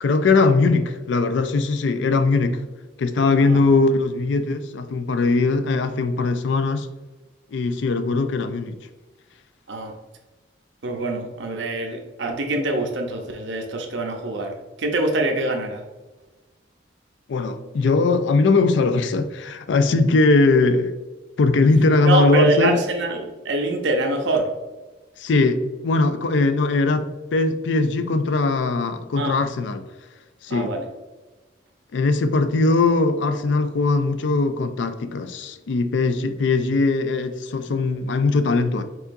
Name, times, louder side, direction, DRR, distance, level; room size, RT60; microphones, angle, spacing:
voice 1, 0.0-2.6 3.0-6.9 7.5-8.8 17.3-20.9 21.4-22.8 25.2-29.8 30.4-30.7 31.9-38.8, left 3 dB, 75° left, 0.4 m, -20 dB
voice 2, 10.8-14.5 14.8-15.8 22.0-24.5 29.2-29.3 30.5-30.8, right 2 dB, 75° right, 0.6 m, -24 dB
4.8 x 3.8 x 2.6 m
head